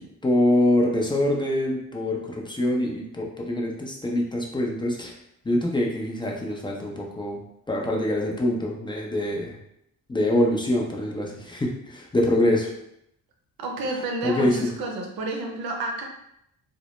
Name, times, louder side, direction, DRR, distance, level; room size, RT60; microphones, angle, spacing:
voice 1, 0.0-5.1 5.4-7.4 7.7-9.6 10.1-12.7 14.2-14.7, left 1 dB, 15° left, -1 dB, 0.4 m, -24 dB
voice 2, 13.6-16.0, right 2 dB, 70° right, 2 dB, 0.6 m, -30 dB
2.0 x 2.0 x 3.0 m, 0.78 s
cardioid pair, 75°, 37 cm